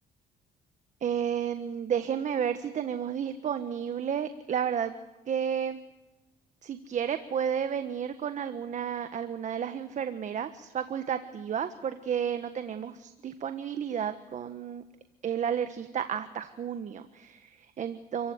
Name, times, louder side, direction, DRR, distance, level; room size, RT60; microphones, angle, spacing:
voice 1, 1.0-4.9 5.3-5.8 6.6-14.8 15.2-18.3, right 8 dB, 45° right, 9 dB, 1.4 m, -32 dB
29.5 x 16.0 x 9.5 m, 1.1 s
cardioid pair, 110°, 17 cm